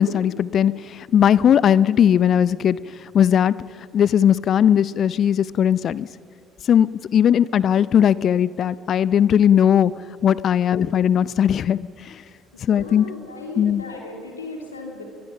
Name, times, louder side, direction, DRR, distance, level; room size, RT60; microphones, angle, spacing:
voice 1, 0.0-3.6 3.9-6.1 6.6-9.9 10.2-12.2 12.6-13.1 13.6-13.8, left 9 dB, 50° left, 20 dB, 0.5 m, -18 dB
voice 2, 12.5-15.0, left 2 dB, 85° left, 2 dB, 2.8 m, -36 dB
30.0 x 23.5 x 5.8 m, 2.4 s
figure-of-eight pair, 50°, 0 cm